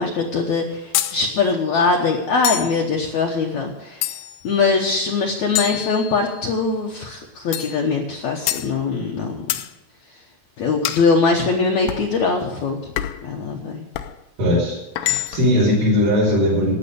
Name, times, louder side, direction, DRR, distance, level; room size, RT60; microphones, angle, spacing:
voice 1, 0.0-4.1 4.4-9.4 10.6-12.9 13.2-13.8, left 4 dB, 65° left, 0 dB, 1.8 m, -22 dB
sound 1, 0.9-1.2 2.4-2.8 4.0-4.5 5.6-6.5 7.5-7.8 8.5-8.7 9.5-9.7 10.8-11.1 11.9-12.1 13.0-13.3 13.9-14.2 15.0-15.6, left 13 dB, 85° left, 2.9 m, -26 dB
voice 2, 14.4-16.8, left 1 dB, 55° right, -9 dB, 5.1 m, -19 dB
13.0 x 8.9 x 6.9 m, 0.94 s
omnidirectional pair, 4.8 m